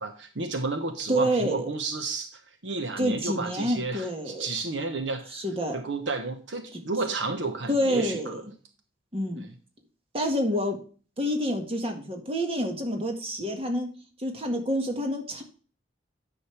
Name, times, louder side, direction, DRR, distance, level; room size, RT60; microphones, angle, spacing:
voice 1, 0.0-5.3 5.7-8.3 9.4-9.5, right 3 dB, 75° right, 6 dB, 1.2 m, -32 dB
voice 2, 1.1-1.7 3.0-4.5 5.3-5.8 6.7-6.8 7.7-8.5 9.1-9.4 10.1-10.8 11.2-13.9 14.2-15.4, equal, 30° right, 3 dB, 1.7 m, -28 dB
9.9 x 6.5 x 3.3 m, 0.39 s
head